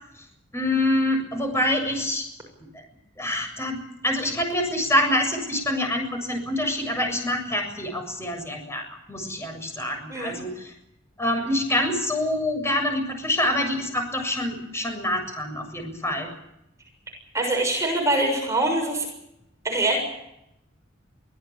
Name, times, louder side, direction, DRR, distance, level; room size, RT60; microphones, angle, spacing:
voice 1, 0.5-2.3 3.2-10.7 11.2-16.3, left 1 dB, 15° left, 4 dB, 7.2 m, -26 dB
voice 2, 17.3-19.1 19.6-20.0, right 2 dB, 15° right, 1 dB, 6.8 m, -23 dB
24.5 x 17.5 x 8.8 m, 0.81 s
head